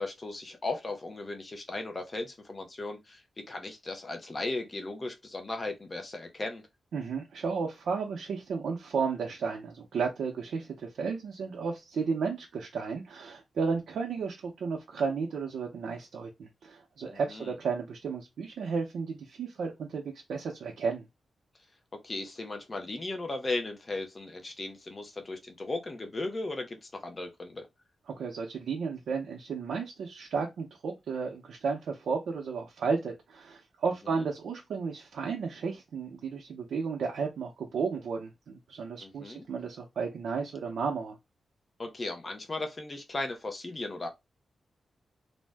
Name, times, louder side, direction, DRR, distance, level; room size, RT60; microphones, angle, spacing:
voice 1, 0.0-6.6 17.1-17.6 21.9-27.7 34.1-34.3 39.0-39.5 41.8-44.1, left 2 dB, 25° left, 0.6 m, -36 dB
voice 2, 6.9-20.0 20.3-21.1 28.2-41.2, right 5 dB, 80° right, 0.6 m, -33 dB
2.5 x 2.1 x 3.3 m
wide cardioid pair, 155°, 0 cm